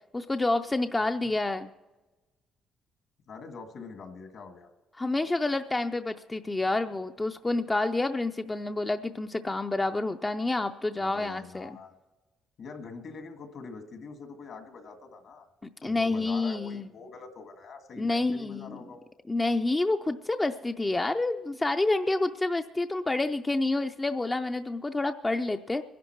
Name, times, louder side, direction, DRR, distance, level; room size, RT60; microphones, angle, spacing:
voice 1, 0.1-1.7 5.0-11.8 15.8-16.9 18.0-18.8 19.3-25.8, left 2 dB, 20° left, 7 dB, 0.5 m, -28 dB
voice 2, 3.3-4.7 10.9-11.9 12.6-15.5 15.8-19.1, left 4 dB, 65° left, 6 dB, 1.8 m, -44 dB
23.5 x 11.0 x 4.6 m, 1.2 s
cardioid pair, 90°, 0 cm